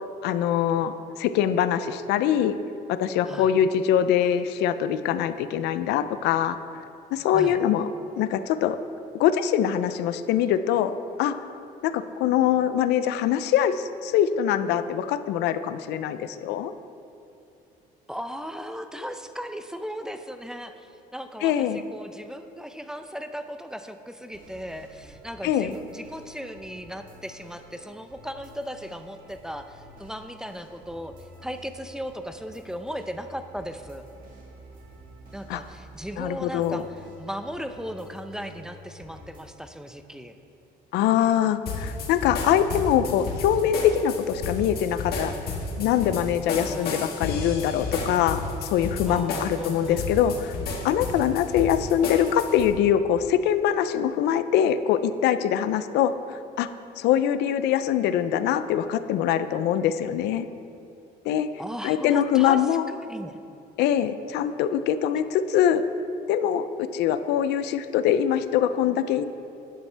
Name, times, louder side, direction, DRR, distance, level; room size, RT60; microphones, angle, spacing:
voice 1, 0.2-2.5 2.9-6.6 7.1-7.9 8.2-8.8 9.1-11.4 11.8-16.7 21.4-21.8 25.4-25.7 35.5-35.6 36.2-36.8 40.9-45.3 45.8-50.5 50.8-56.7 57.0-60.5 61.3-61.5 61.8-62.8 63.8-65.8 66.3-69.3, left 10 dB, 85° left, 12 dB, 0.5 m, -23 dB
voice 2, 18.1-31.1 31.4-34.1 35.3-40.4 46.7-47.0 49.1-50.1 61.6-62.6 62.9-63.4, equal, 5° right, 8 dB, 0.5 m, -37 dB
sound 1, 24.3-39.4, equal, 55° right, 2.3 m, -49 dB
sound 2, 41.6-52.7, left 3 dB, 65° left, 1.7 m, -32 dB
11.5 x 10.0 x 3.4 m, 2.6 s
cardioid pair, 110°, 17 cm